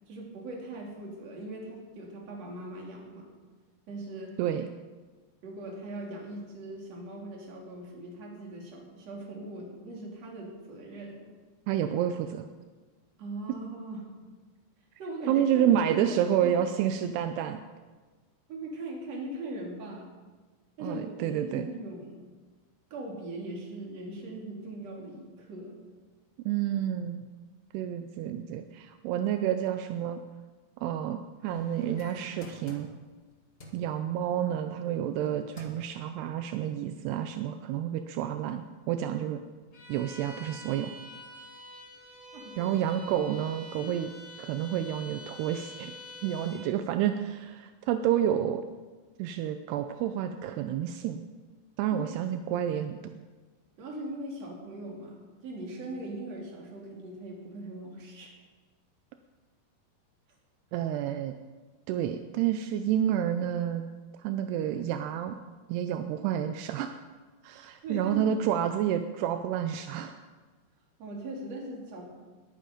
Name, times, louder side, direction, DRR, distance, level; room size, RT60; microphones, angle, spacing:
voice 1, 0.1-3.3 3.9-4.3 5.4-11.2 13.2-14.1 15.0-15.7 16.0-16.6 18.5-20.1 20.8-22.2 22.9-25.8 42.3-42.7 43.8-43.9 51.9-52.1 53.8-58.3 67.8-68.2 71.0-72.1, right 1 dB, 45° right, -1 dB, 3.5 m, -40 dB
voice 2, 4.4-4.7 11.7-12.5 15.3-17.6 20.8-21.7 26.5-27.2 27.7-30.2 30.8-32.9 33.7-39.4 39.9-40.9 42.6-44.1 44.4-45.9 46.2-48.6 49.2-51.2 51.8-53.0 60.7-61.3 61.9-63.9 64.2-65.4 65.7-67.0 67.4-70.2, right 10 dB, 85° right, 8 dB, 2.7 m, -29 dB
sound 1, 31.4-33.2 33.6-33.8 35.1-35.3 35.6-35.9 36.4-36.5, left 1 dB, 55° left, 0.6 m, -45 dB
Bowed string instrument, 39.7-46.7, left 1 dB, 30° left, 4.4 m, -47 dB
21.0 x 9.2 x 5.1 m, 1.3 s
omnidirectional pair, 4.7 m